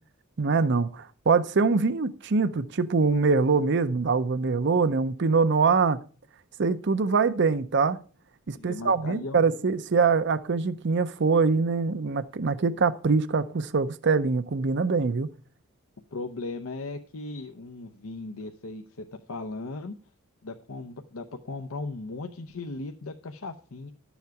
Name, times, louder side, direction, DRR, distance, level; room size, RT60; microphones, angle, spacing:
voice 1, 0.4-6.0 6.6-8.0 8.5-15.3, right 4 dB, 55° right, 0.6 m, -24 dB
voice 2, 8.6-9.4 16.1-20.0 20.4-23.9, left 3 dB, 80° left, 0.7 m, -37 dB
12.0 x 7.2 x 4.7 m
head